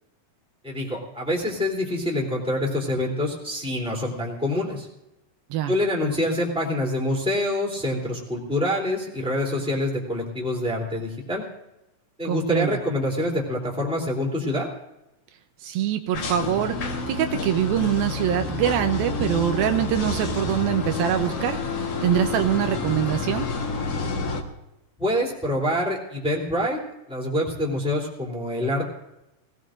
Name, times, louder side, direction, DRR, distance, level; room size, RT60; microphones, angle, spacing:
voice 1, 0.6-4.9 5.7-11.4 12.2-14.7 25.0-26.8 27.1-28.8, left 1 dB, ahead, -3 dB, 2.5 m, -26 dB
voice 2, 12.2-12.7 15.6-21.6 22.0-23.5, right 11 dB, 85° right, 7 dB, 2.6 m, -24 dB
sound 1, 16.1-24.4, left 3 dB, 55° left, 1.9 m, -29 dB
19.5 x 18.5 x 2.6 m, 0.91 s
omnidirectional pair, 4.3 m